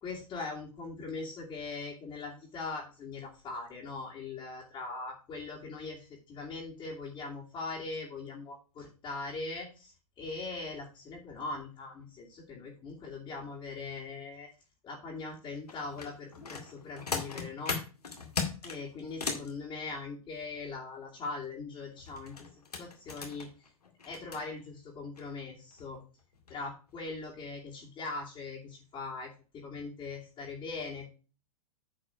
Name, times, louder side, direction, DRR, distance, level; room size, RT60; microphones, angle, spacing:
voice 1, 0.0-14.5 14.8-17.8 18.6-22.5 22.8-23.5 24.1-26.0 26.5-31.1, left 3 dB, 25° left, -6 dB, 2.7 m, -41 dB
sound 1, 15.7-19.5 22.0-24.4 25.2-25.3 25.7-25.9 26.3-26.6 26.9-27.0, left 4 dB, 90° left, 2.1 m, -38 dB
9.7 x 4.7 x 4.7 m, 0.34 s
hypercardioid pair, 115°, 19 cm